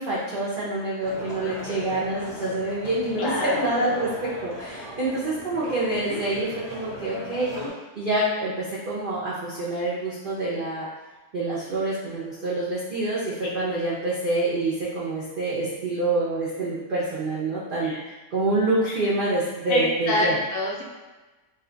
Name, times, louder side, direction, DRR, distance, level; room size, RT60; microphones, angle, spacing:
voice 1, 0.0-4.1 4.4-7.5 8.0-10.9 11.3-20.4, right 2 dB, 55° right, -8 dB, 0.6 m, -27 dB
sound 1, 1.0-7.7, left 1 dB, 50° left, 0.4 m, -37 dB
voice 2, 3.1-3.7 13.4-13.5 17.8-18.0 19.7-20.8, left 1 dB, 80° left, -2 dB, 1.2 m, -26 dB
2.8 x 2.2 x 3.7 m, 1.2 s
omnidirectional pair, 1.6 m